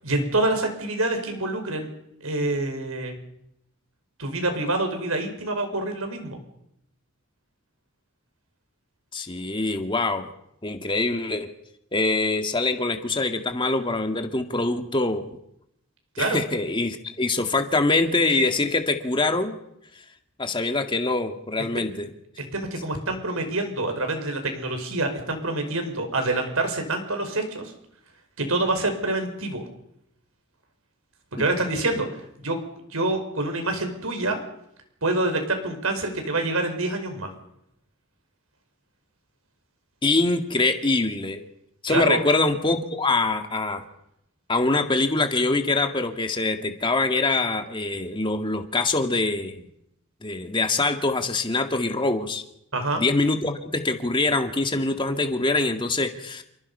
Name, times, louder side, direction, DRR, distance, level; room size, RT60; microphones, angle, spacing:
voice 1, 0.0-1.9 2.2-3.2 4.2-6.4 16.1-16.4 22.4-27.7 28.4-29.6 31.3-32.1 32.4-32.6 32.9-34.4 35.0-37.3 41.9-42.2 52.7-53.0, right 2 dB, 80° right, 5 dB, 5.2 m, -26 dB
voice 2, 9.1-10.3 10.6-11.5 11.9-15.4 16.2-19.6 20.4-22.1 31.4-31.5 40.0-41.4 41.8-43.8 44.5-49.7 50.2-52.4 53.0-56.4, left 2 dB, 25° left, 6 dB, 2.0 m, -24 dB
28.5 x 24.0 x 5.6 m, 0.79 s
head